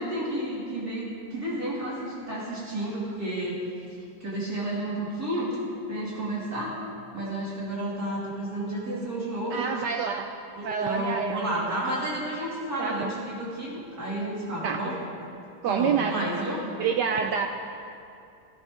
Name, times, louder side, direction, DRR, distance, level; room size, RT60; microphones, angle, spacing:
voice 1, 0.0-3.6 4.2-5.6 5.9-6.7 7.1-9.6 10.5-14.9 15.6-16.6, right 1 dB, 45° right, -6 dB, 3.1 m, -31 dB
voice 2, 9.5-10.3 10.6-11.5 12.8-13.1 14.6-14.8 15.6-16.4 16.8-17.5, right 6 dB, 75° right, 5 dB, 1.0 m, -27 dB
15.5 x 14.0 x 3.7 m, 2.5 s
omnidirectional pair, 2.3 m